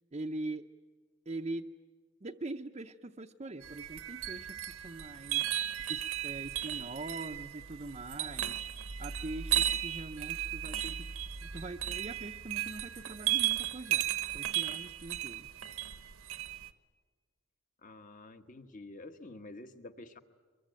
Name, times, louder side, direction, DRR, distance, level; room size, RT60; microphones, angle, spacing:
voice 1, 0.1-0.7 1.3-1.7 2.2-5.6 5.9-8.6 9.0-11.1 11.4-14.1 14.3-15.5, right 2 dB, 30° right, 2 dB, 0.7 m, -42 dB
sound 1, 3.6-16.7, right 12 dB, 75° right, 1.1 m, -35 dB
voice 2, 17.8-20.2, left 2 dB, 40° left, 7 dB, 1.3 m, -49 dB
24.0 x 22.5 x 9.1 m, 1.5 s
head